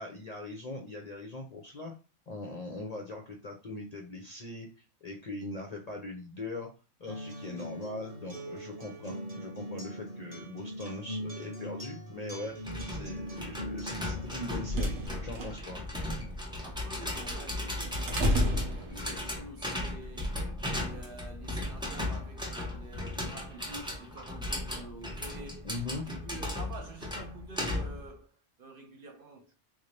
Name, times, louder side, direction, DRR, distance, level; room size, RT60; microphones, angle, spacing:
voice 1, 0.0-1.9 2.3-4.7 5.0-6.7 7.0-12.6 12.9-14.9 15.2-15.8 25.6-26.0, left 2 dB, 45° left, 0.5 m, -41 dB
Acoustic guitar, 7.1-15.1, equal, 35° right, 1.0 m, -41 dB
voice 2, 7.4-7.8 16.6-25.7 26.0-29.5, right 2 dB, 55° right, 0.7 m, -48 dB
sound 1, 12.6-28.1, left 1 dB, 5° right, 0.6 m, -37 dB
sound 2, 14.6-19.4, equal, 85° right, 1.4 m, -32 dB
3.7 x 2.6 x 3.2 m
omnidirectional pair, 1.3 m